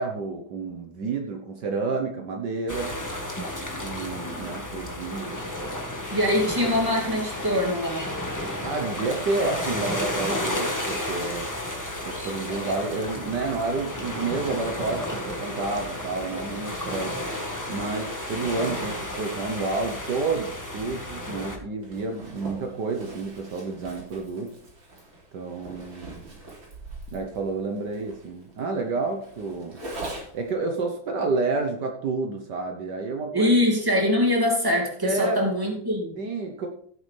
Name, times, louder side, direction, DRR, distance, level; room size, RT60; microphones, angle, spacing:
voice 1, 0.0-3.0 3.7-5.4 8.6-11.5 12.0-17.2 17.7-24.6 25.3-26.3 27.1-29.8 30.3-33.6 35.0-35.4 36.2-36.7, right 3 dB, 65° right, 3 dB, 1.6 m, -30 dB
sound 1, 2.7-21.6, left 1 dB, 10° left, 1.4 m, -32 dB
voice 2, 6.1-8.1 33.3-36.2, left 1 dB, 10° right, -1 dB, 2.6 m, -23 dB
Zipper (clothing), 21.8-30.5, right 2 dB, 90° right, 3.8 m, -42 dB
16.0 x 7.9 x 3.4 m, 0.63 s
omnidirectional pair, 2.0 m